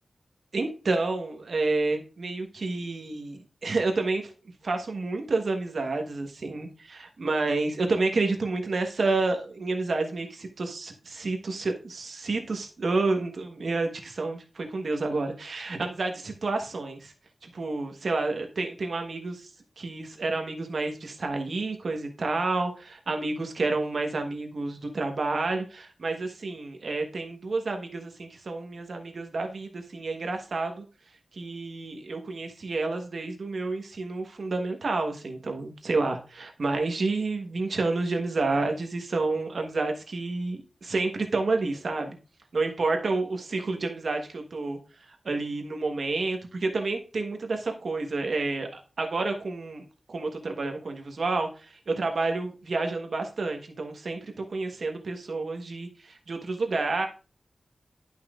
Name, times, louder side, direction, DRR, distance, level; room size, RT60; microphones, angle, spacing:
voice 1, 0.5-4.3 4.6-17.1 17.4-19.5 19.8-30.8 31.3-42.2 42.5-44.8 45.2-57.1, right 3 dB, 70° right, 4 dB, 1.2 m, -29 dB
11.0 x 5.6 x 2.4 m, 0.34 s
wide cardioid pair, 120°, 0 cm